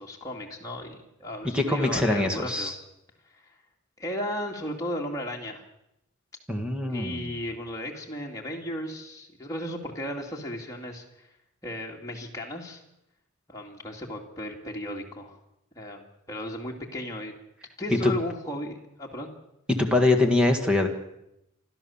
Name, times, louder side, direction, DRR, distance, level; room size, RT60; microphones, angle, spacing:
voice 1, 0.0-2.7 3.2-3.6 4.0-5.6 6.9-11.4 11.6-12.8 13.5-15.4 15.7-17.3 17.8-19.3, left 1 dB, 15° left, -1 dB, 2.4 m, -35 dB
voice 2, 1.5-2.7 6.5-7.3 18.0-18.1 19.7-20.9, left 2 dB, 5° right, 4 dB, 1.8 m, -23 dB
28.5 x 13.0 x 7.2 m, 0.85 s
head